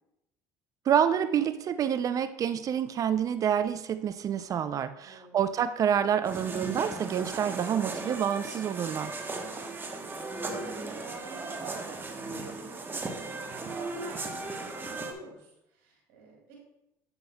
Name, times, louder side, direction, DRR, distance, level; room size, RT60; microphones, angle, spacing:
voice 1, 0.9-9.1, right 8 dB, 45° right, 13 dB, 0.4 m, -28 dB
voice 2, 5.0-5.4 9.3-16.6, right 3 dB, 80° right, -2 dB, 2.2 m, -50 dB
sound 1, 6.2-15.1, right 3 dB, 25° right, 1.0 m, -37 dB
8.5 x 7.8 x 2.2 m, 0.85 s
supercardioid pair, 80°, 8 cm